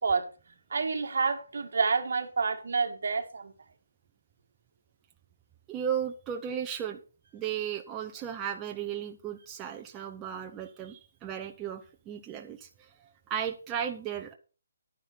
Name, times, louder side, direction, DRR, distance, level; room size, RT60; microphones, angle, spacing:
voice 1, 0.7-3.5, right 4 dB, 65° right, 2.0 m, -28 dB
voice 2, 5.7-7.0 7.3-12.9 13.3-14.3, right 9 dB, 15° right, 0.7 m, -35 dB
11.0 x 9.8 x 4.2 m
hypercardioid pair, 170°, 0 cm